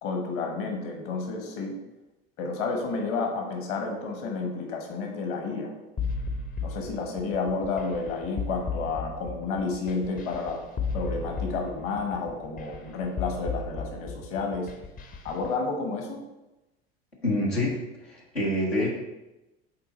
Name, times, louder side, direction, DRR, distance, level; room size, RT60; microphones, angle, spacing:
voice 1, 0.0-1.7 2.4-5.7 6.6-10.6 10.9-14.7 15.2-16.2, left 4 dB, 45° left, 2 dB, 1.2 m, -31 dB
sound 1, 6.0-15.5, left 4 dB, 30° left, 0.6 m, -34 dB
voice 2, 17.2-18.9, left 1 dB, 90° left, -4 dB, 1.1 m, -27 dB
5.9 x 3.9 x 4.1 m, 1.0 s
figure-of-eight pair, 70°, 30 cm